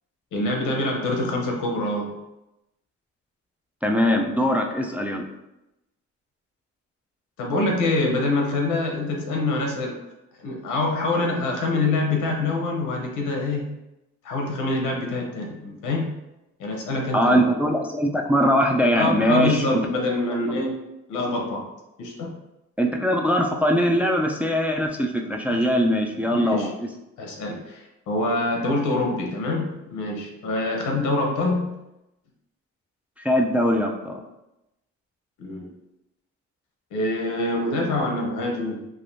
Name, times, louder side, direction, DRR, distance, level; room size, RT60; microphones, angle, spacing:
voice 1, 0.3-2.2 7.4-10.0 10.4-13.7 14.2-16.2 16.6-17.4 18.9-20.8 21.1-21.7 22.0-22.4 25.5-25.6 26.3-26.7 27.2-31.7 35.4-35.7 36.9-38.9, left 2 dB, 85° left, 1 dB, 0.8 m, -25 dB
voice 2, 3.8-5.2 17.1-19.8 22.8-26.9 33.2-34.2, equal, 5° right, 1 dB, 0.3 m, -21 dB
3.5 x 2.5 x 2.6 m, 0.91 s
cardioid pair, 90°, 30 cm